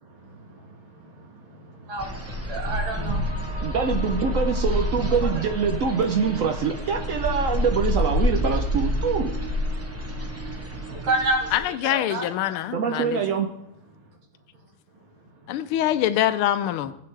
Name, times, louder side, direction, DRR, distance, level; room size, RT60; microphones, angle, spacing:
voice 1, 0.0-3.8 4.9-5.4 10.3-12.3, right 2 dB, 65° right, 0 dB, 2.6 m, -31 dB
sound 1, 2.0-11.6, left 1 dB, 20° right, 0.3 m, -28 dB
sound 2, 2.5-13.5, right 5 dB, 40° right, 0.9 m, -41 dB
voice 2, 3.6-9.3 12.7-13.5, right 6 dB, 80° right, 4 dB, 0.7 m, -24 dB
voice 3, 11.5-13.2 15.5-16.9, left 12 dB, 80° left, 12 dB, 1.5 m, -24 dB
16.0 x 8.5 x 3.3 m, 0.81 s
omnidirectional pair, 2.4 m